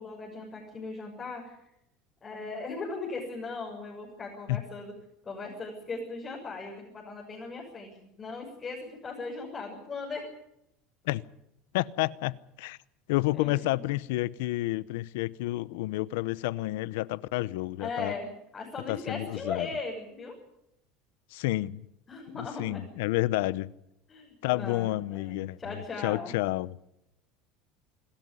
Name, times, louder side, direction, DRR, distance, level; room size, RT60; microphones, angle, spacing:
voice 1, 0.0-1.7 2.2-4.9 5.2-10.2 13.3-13.8 17.8-20.3 22.1-22.8 24.1-26.3, left 3 dB, 20° left, 6.7 m, -38 dB
voice 2, 11.7-12.8 13.1-18.1 18.9-19.7 21.3-21.9 22.4-23.7 24.4-26.8, left 18 dB, 85° left, 0.8 m, -30 dB
26.5 x 13.5 x 9.7 m
supercardioid pair, 130°, 0 cm